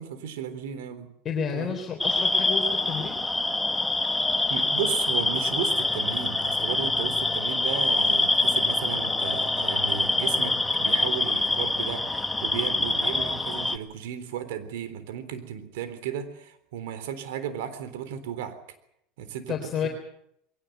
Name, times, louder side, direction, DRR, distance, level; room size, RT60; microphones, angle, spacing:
voice 1, 0.0-1.7 4.5-18.6 19.2-19.6 19.8-19.9, right 9 dB, 80° right, 11 dB, 3.7 m, -35 dB
voice 2, 1.2-3.2 19.5-19.9, left 6 dB, 30° left, 2 dB, 3.7 m, -30 dB
sound 1, 2.0-13.8, left 2 dB, 10° left, 1.5 m, -25 dB
sound 2, 5.7-13.2, left 8 dB, 45° left, 4.7 m, -46 dB
22.0 x 18.0 x 8.1 m, 0.74 s
supercardioid pair, 125°, 0 cm